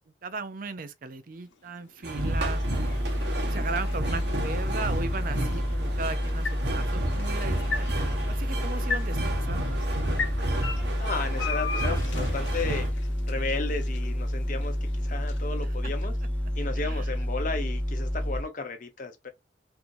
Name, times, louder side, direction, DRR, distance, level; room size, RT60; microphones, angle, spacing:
voice 1, 0.2-2.9 3.5-7.9 8.3-9.8 16.8-17.0, right 3 dB, 50° right, 0.5 m, -37 dB
sound 1, 1.3-17.5, left 5 dB, 85° left, 0.8 m, -40 dB
sound 2, 2.0-12.9, right 1 dB, 65° right, 1.0 m, -33 dB
sound 3, 2.2-18.4, equal, 10° left, 0.3 m, -29 dB
voice 2, 11.0-13.0 13.3-16.1 16.6-19.3, left 3 dB, 45° left, 0.9 m, -34 dB
4.4 x 2.7 x 2.6 m
head